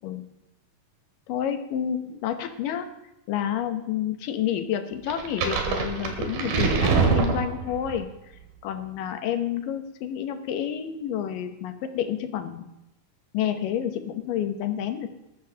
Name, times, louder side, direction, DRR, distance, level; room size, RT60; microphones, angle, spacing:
voice 1, 1.3-2.9 3.3-8.1 8.6-12.7 13.3-15.1, left 10 dB, 75° left, 7 dB, 2.5 m, -29 dB
sound 1, 5.1-8.0, right 4 dB, 85° right, 3.6 m, -24 dB
20.0 x 13.5 x 2.9 m, 0.86 s
omnidirectional pair, 4.2 m